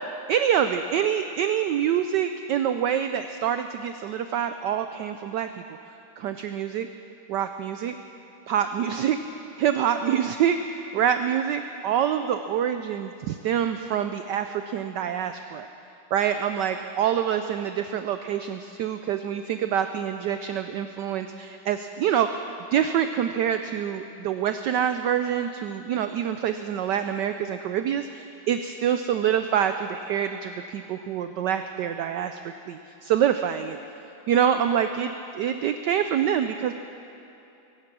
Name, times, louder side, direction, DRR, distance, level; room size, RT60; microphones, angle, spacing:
voice 1, 0.3-5.5 6.2-6.9 7.3-7.9 8.5-9.2 9.6-15.7 16.1-22.4 22.7-32.4 32.7-33.8 34.3-36.7, right 9 dB, 85° right, 8 dB, 0.9 m, -26 dB
22.5 x 9.7 x 6.1 m, 2.8 s
omnidirectional pair, 2.4 m